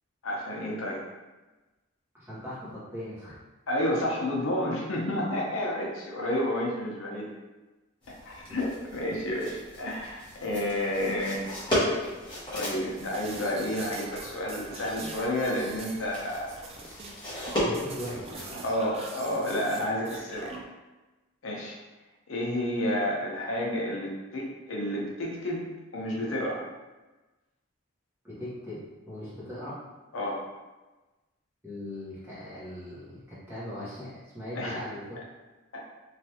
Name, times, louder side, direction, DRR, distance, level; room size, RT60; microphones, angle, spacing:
voice 1, 0.2-1.0 3.7-7.3 8.1-11.5 12.5-16.6 18.6-20.5 21.4-21.8 22.3-26.6 30.1-30.4 34.5-34.8 35.7-35.8, left 1 dB, 80° left, -2 dB, 0.6 m, -30 dB
voice 2, 2.1-3.4 17.6-18.6 28.2-29.8 31.6-35.0, left 1 dB, 10° right, -9 dB, 0.9 m, -39 dB
sound 1, 8.0-18.5, equal, 20° left, 0.9 m, -35 dB
sound 2, 13.0-20.6, right 3 dB, 30° right, 0.3 m, -43 dB
3.2 x 2.4 x 2.7 m, 1.1 s
head